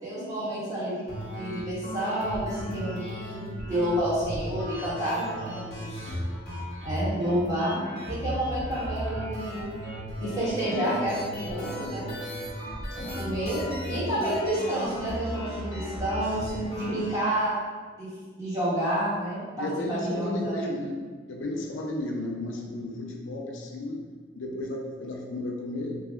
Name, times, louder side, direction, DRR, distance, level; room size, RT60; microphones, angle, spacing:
voice 1, 0.0-6.2 6.8-7.8 8.1-9.6 10.2-12.1 13.1-17.6 18.0-18.1 18.3-20.8, right 1 dB, 20° right, -12 dB, 1.4 m, -29 dB
sound 1, 1.1-17.1, equal, 35° left, 1.2 m, -36 dB
voice 2, 12.5-13.4 19.6-21.0 21.3-24.0 24.4-26.0, left 1 dB, 80° left, 0 dB, 0.5 m, -34 dB
3.3 x 2.4 x 3.5 m, 1.5 s
head